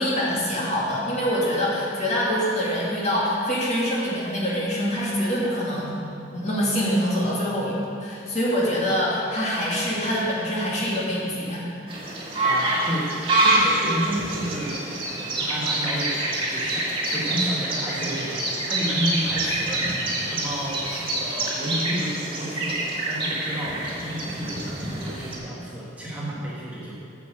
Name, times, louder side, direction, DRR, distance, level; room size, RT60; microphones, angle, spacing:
voice 1, 0.0-5.9 6.3-11.9, equal, 35° left, -6 dB, 2.5 m, -25 dB
sound 1, 11.9-25.4, right 2 dB, 25° right, 2.0 m, -26 dB
voice 2, 12.4-14.8 15.2-22.8 23.1-27.0, equal, 5° right, -7 dB, 1.6 m, -31 dB
9.7 x 6.4 x 7.9 m, 2.5 s
head